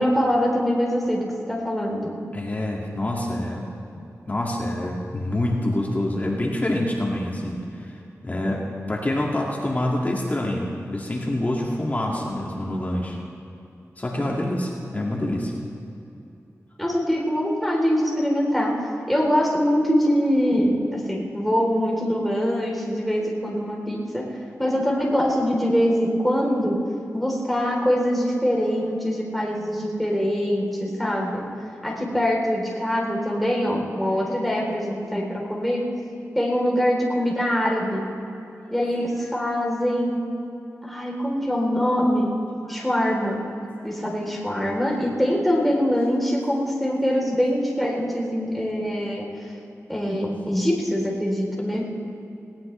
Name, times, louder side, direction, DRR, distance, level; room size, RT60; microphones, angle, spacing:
voice 1, 0.0-2.1 16.8-18.7 19.1-24.3 24.6-26.8 27.1-31.4 31.8-35.9 36.4-38.1 38.7-40.3 40.8-42.3 42.7-43.4 43.8-49.3 49.9-51.9, equal, ahead, -3 dB, 3.5 m, -23 dB
voice 2, 2.3-3.7 4.3-7.9 8.2-13.2 14.0-15.5 34.2-34.4 36.2-36.4 38.5-38.7 42.7-42.8 43.8-44.0, left 1 dB, 30° left, -2 dB, 2.1 m, -26 dB
19.0 x 18.0 x 3.3 m, 2.8 s
wide cardioid pair, 85°, 6 cm